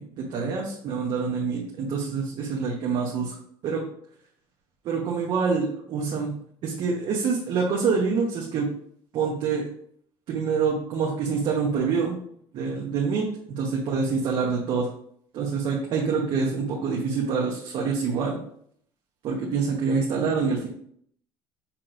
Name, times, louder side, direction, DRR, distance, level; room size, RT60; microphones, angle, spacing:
voice 1, 0.0-3.3 3.6-3.8 4.8-6.3 6.6-8.7 9.1-9.6 10.3-12.2 12.5-13.3 13.6-14.9 15.3-18.4 19.2-20.7, right 5 dB, 55° right, -2 dB, 1.1 m, -26 dB
6.1 x 3.2 x 5.0 m, 0.65 s
cardioid pair, 140°, 10 cm